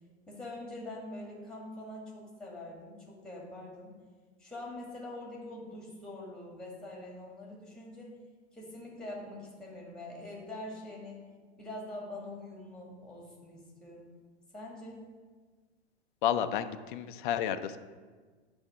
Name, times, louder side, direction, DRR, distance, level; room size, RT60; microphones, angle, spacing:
voice 1, 0.3-3.9 4.4-8.1 8.5-11.2 11.6-14.1 14.5-15.0, left 1 dB, ahead, -2 dB, 2.0 m, -44 dB
voice 2, 16.2-17.8, left 10 dB, 45° left, 10 dB, 0.5 m, -31 dB
9.9 x 3.5 x 4.9 m, 1.4 s
figure-of-eight pair, 100°, 34 cm